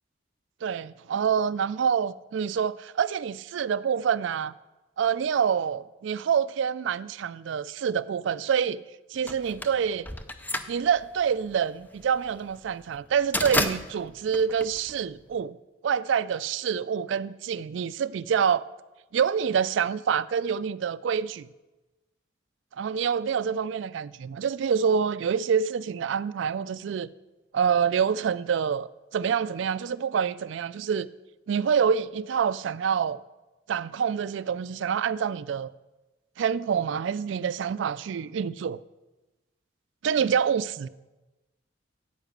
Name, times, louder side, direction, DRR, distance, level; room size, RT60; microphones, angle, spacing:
voice 1, 0.6-4.5 5.0-8.8 9.1-10.0 10.7-15.6 15.8-18.6 19.1-21.5 22.8-27.1 27.5-31.1 31.5-33.2 33.7-35.7 36.4-38.8 40.0-40.6, right 7 dB, 75° right, 0.3 m, -26 dB
sound 1, 9.3-15.4, left 1 dB, 10° left, 0.5 m, -32 dB
9.7 x 8.8 x 6.6 m
head